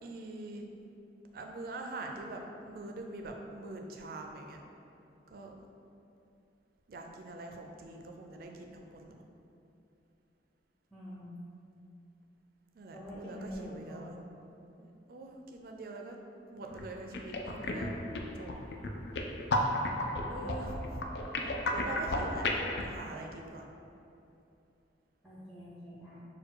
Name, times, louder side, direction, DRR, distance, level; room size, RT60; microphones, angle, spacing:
voice 1, 0.0-0.7 1.3-4.6 5.3-5.5 6.9-9.3 12.7-14.1 14.8-16.2 16.5-18.0 18.3-18.5 20.3-21.0 21.7-22.5 22.8-23.7, right 2 dB, 55° right, 2 dB, 0.4 m, -43 dB
voice 2, 10.9-11.4 12.9-14.2 19.3-19.5 20.2-20.5 25.2-26.2, equal, ahead, -8 dB, 0.6 m, -46 dB
sound 1, 16.6-16.8 17.1-22.9, left 1 dB, 65° left, 0.4 m, -33 dB
4.4 x 2.3 x 4.6 m, 2.8 s
head